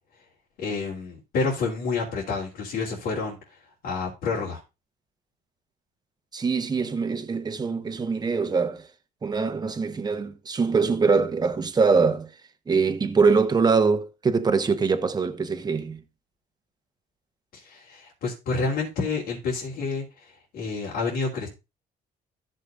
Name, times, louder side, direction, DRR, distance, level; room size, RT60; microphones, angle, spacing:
voice 1, 0.6-3.4 3.8-4.6 17.5-21.5, left 4 dB, 70° left, 3.6 m, -29 dB
voice 2, 6.3-8.9 9.2-12.3 12.7-16.0, right 4 dB, 25° right, 1.1 m, -23 dB
14.5 x 6.8 x 2.6 m
cardioid pair, 110°, 17 cm